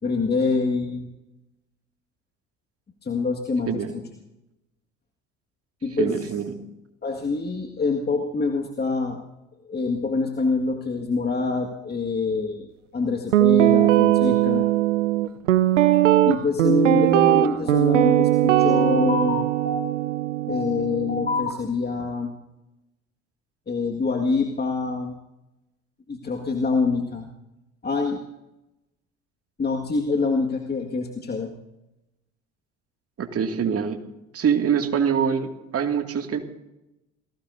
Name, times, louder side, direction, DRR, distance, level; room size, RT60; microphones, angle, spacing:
voice 1, 0.0-1.1 3.0-4.0 5.8-6.1 7.0-9.2 9.6-14.7 16.3-20.0 20.4-22.3 23.7-25.2 26.1-27.3 27.8-28.2 29.6-31.5, left 4 dB, 25° left, 1 dB, 2.0 m, -25 dB
voice 2, 6.0-6.5 33.2-34.0 34.3-36.4, right 7 dB, 40° right, 4 dB, 2.4 m, -24 dB
Guitar, 13.3-21.5, right 14 dB, 85° right, 0.7 m, -19 dB
28.5 x 18.0 x 2.7 m, 0.92 s
hypercardioid pair, 55°, 37 cm